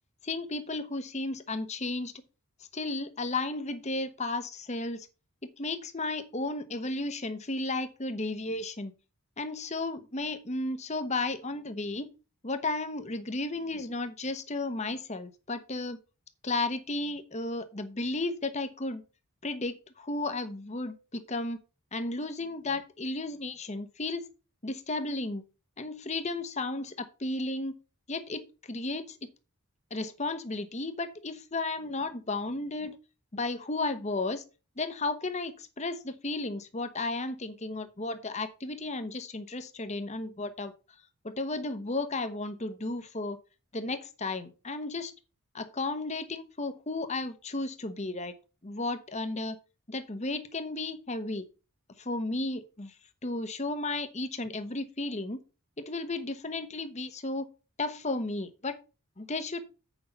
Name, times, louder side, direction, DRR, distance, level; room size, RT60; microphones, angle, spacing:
voice 1, 0.2-2.1 2.7-5.1 5.4-8.9 9.4-12.1 12.4-16.0 16.4-19.0 19.4-21.6 21.9-24.2 24.6-25.4 25.8-27.7 28.1-29.3 29.9-33.0 33.3-34.4 34.8-40.7 41.2-43.4 43.7-45.1 45.5-48.3 48.6-49.6 49.9-51.5 52.0-52.9 53.2-55.4 55.8-57.5 57.8-58.8 59.2-59.6, left 2 dB, 30° left, 10 dB, 0.9 m, -34 dB
8.1 x 5.5 x 5.6 m, 0.32 s
head